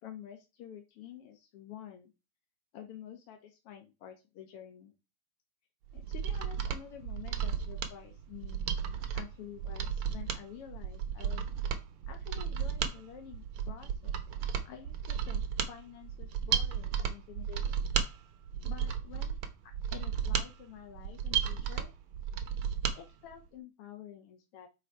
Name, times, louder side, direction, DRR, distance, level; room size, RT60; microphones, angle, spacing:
voice 1, 0.0-2.1 2.7-4.9 5.9-8.8 9.1-11.4 12.1-14.1 14.6-17.8 18.6-19.3 19.6-21.9 22.9-24.7, left 10 dB, 70° left, 4 dB, 1.4 m, -49 dB
Mechanisms, 5.9-23.0 23.3-23.4, right 8 dB, 80° right, 1.2 m, -34 dB
8.6 x 3.9 x 4.6 m, 0.27 s
omnidirectional pair, 3.8 m